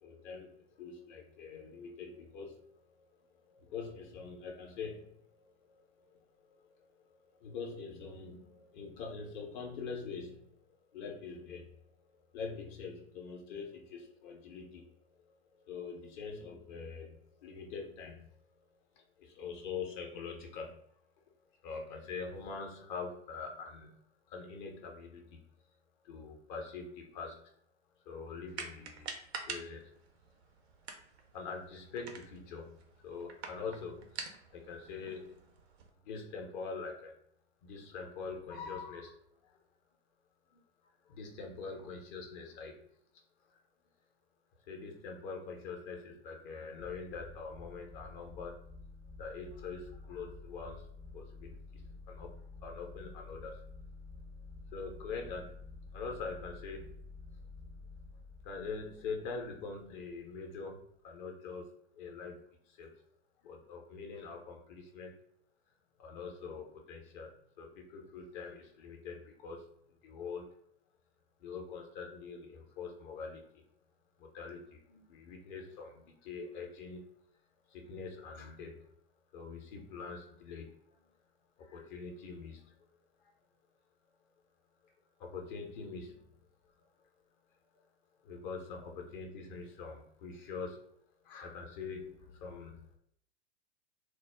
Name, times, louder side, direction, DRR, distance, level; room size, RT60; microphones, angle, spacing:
voice 1, 0.0-2.8 3.1-6.7 7.2-10.6 10.9-11.9 12.3-14.9 15.2-18.3 19.0-20.8 21.6-24.0 24.3-25.4 26.0-27.5 28.1-29.2 29.4-29.9 31.3-32.8 33.0-35.6 36.0-37.1 37.6-39.2 39.4-39.6 40.5-40.6 41.1-42.8 43.5-43.6 44.7-48.6 49.2-50.9 51.1-51.8 52.1-53.6 54.7-56.9 58.4-62.4 62.7-62.9 63.4-65.1 66.0-69.7 70.0-70.5 71.4-73.6 74.2-77.0 77.7-78.9 79.3-81.1 81.6-82.8 83.2-83.3 85.2-86.4 86.8-86.9 88.2-90.8 91.2-93.0, left 5 dB, 45° left, 2 dB, 0.8 m, -44 dB
sound 1, 28.5-35.9, right 5 dB, 70° right, 0.6 m, -47 dB
sound 2, 46.8-60.1, left 3 dB, 10° left, 0.4 m, -50 dB
2.3 x 2.0 x 3.3 m, 0.69 s
figure-of-eight pair, 100°, 32 cm